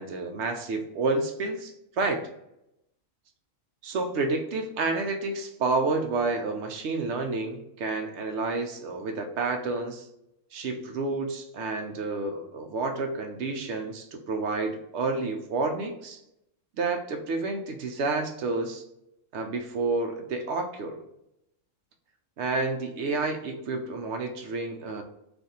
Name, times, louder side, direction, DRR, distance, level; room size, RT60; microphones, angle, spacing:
voice 1, 0.0-2.2 3.8-10.0 10.5-16.2 16.8-18.8 19.3-21.0 22.4-25.0, right 3 dB, 65° right, 5 dB, 0.8 m, -30 dB
2.6 x 2.5 x 4.1 m, 0.82 s
omnidirectional pair, 1.4 m